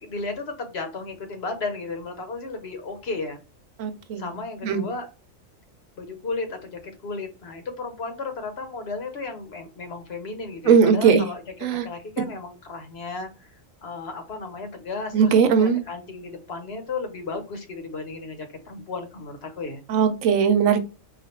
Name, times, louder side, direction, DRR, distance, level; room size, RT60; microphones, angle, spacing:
voice 1, 0.0-3.4 4.2-5.1 6.0-11.4 11.8-13.3 13.8-19.8, left 3 dB, 55° left, 6 dB, 1.0 m, -34 dB
voice 2, 3.8-4.3 4.6-4.8 10.7-11.2 11.6-11.9 15.1-15.8 19.9-20.8, right 6 dB, 80° right, 9 dB, 1.1 m, -19 dB
4.4 x 2.4 x 4.3 m, 0.30 s
omnidirectional pair, 1.4 m